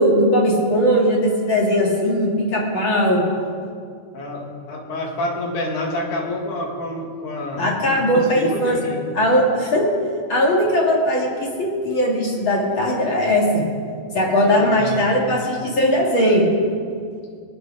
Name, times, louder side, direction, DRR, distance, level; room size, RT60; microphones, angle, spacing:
voice 1, 0.0-3.2 7.6-8.8 9.2-9.9 10.3-13.6 14.1-16.5, equal, 40° left, -2 dB, 2.6 m, -19 dB
voice 2, 4.1-9.1 14.4-15.2, left 1 dB, 70° left, -1 dB, 3.4 m, -28 dB
22.0 x 9.5 x 5.0 m, 2.2 s
omnidirectional pair, 3.7 m